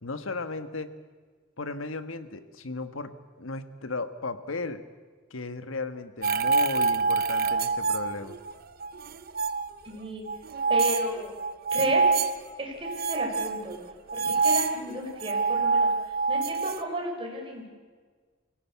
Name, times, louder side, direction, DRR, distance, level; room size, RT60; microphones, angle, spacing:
voice 1, 0.0-0.9 1.6-3.1 3.4-4.8 5.3-8.3, left 3 dB, 85° left, 10 dB, 1.4 m, -35 dB
sound 1, 6.2-8.5 8.8-9.7 10.3-12.4 12.8-16.8, right 4 dB, 50° right, 0.7 m, -26 dB
voice 2, 9.8-10.2 10.7-11.3 11.7-12.1 12.6-13.8 14.1-15.9 16.3-17.7, right 1 dB, 25° right, 0 dB, 5.2 m, -33 dB
24.0 x 16.5 x 8.3 m, 1.5 s
head